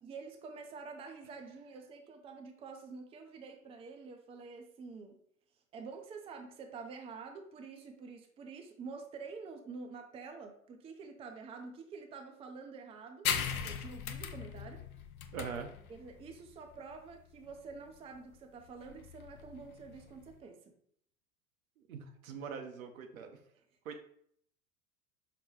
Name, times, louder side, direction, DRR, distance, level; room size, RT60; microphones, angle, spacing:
voice 1, 0.0-5.2 5.7-14.8 15.9-20.7 23.5-23.6, right 4 dB, 15° right, 4 dB, 0.4 m, -48 dB
sound 1, 13.2-20.4, left 8 dB, 85° left, 0.5 m, -39 dB
voice 2, 15.3-15.7 21.9-23.4 23.8-24.0, right 6 dB, 80° right, 5 dB, 0.8 m, -42 dB
5.5 x 2.2 x 3.1 m, 0.65 s
hypercardioid pair, 85°, 41 cm